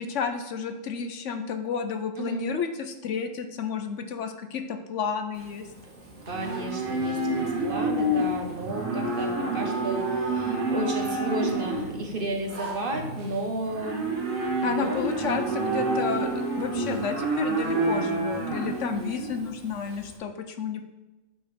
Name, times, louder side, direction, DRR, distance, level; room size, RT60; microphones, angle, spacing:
voice 1, 0.0-5.7 14.6-20.8, left 6 dB, 65° left, 7 dB, 1.0 m, -31 dB
Livestock farm animals working animals, 5.4-20.1, right 2 dB, 85° right, 1.8 m, -29 dB
voice 2, 6.2-14.1 14.6-15.0, right 2 dB, 45° right, 3 dB, 1.1 m, -33 dB
9.0 x 3.8 x 5.0 m, 1.1 s
omnidirectional pair, 1.4 m